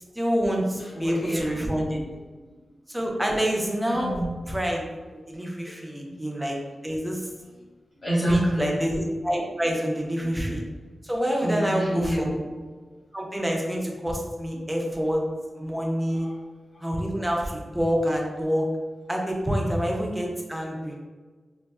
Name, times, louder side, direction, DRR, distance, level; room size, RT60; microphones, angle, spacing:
voice 1, 0.1-2.0 2.9-4.2 4.5-4.8 5.1-6.6 6.8-7.3 8.3-10.6 11.0-12.4 13.1-15.2 15.6-16.3 16.8-18.7 19.1-21.0, equal, 10° right, 0 dB, 0.5 m, -27 dB
voice 2, 0.8-1.6 2.1-2.5 3.9-4.3 5.6-6.1 6.4-6.5 7.9-8.7 10.1-10.5 11.4-12.4 14.5-14.7 15.6-15.7 16.1-16.3 16.7-17.0 19.6-19.7, equal, 45° left, -6 dB, 1.3 m, -29 dB
4.1 x 2.5 x 2.2 m, 1.4 s
wide cardioid pair, 135°, 0 cm